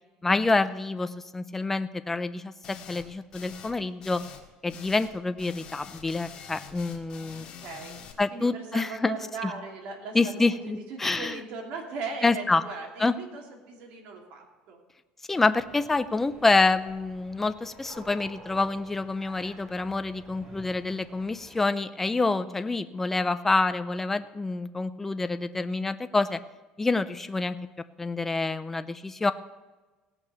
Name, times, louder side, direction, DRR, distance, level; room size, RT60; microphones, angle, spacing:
voice 1, 0.2-4.2 4.6-7.5 8.2-9.2 9.4-9.5 10.1-11.4 12.2-12.6 13.0-13.1 15.3-26.4 26.8-27.6 28.0-29.3, left 3 dB, 10° left, 11 dB, 0.5 m, -27 dB
sound 1, 2.6-3.1 3.3-3.7 4.0-5.1 5.4-8.1, left 7 dB, 45° left, 2.1 m, -45 dB
voice 2, 7.3-8.0 8.3-14.8, right 4 dB, 65° right, 1 dB, 2.9 m, -38 dB
sound 2, 15.6-21.6, right 1 dB, 35° right, 4.3 m, -50 dB
17.5 x 5.9 x 6.9 m, 1.2 s
cardioid pair, 135°, 2 cm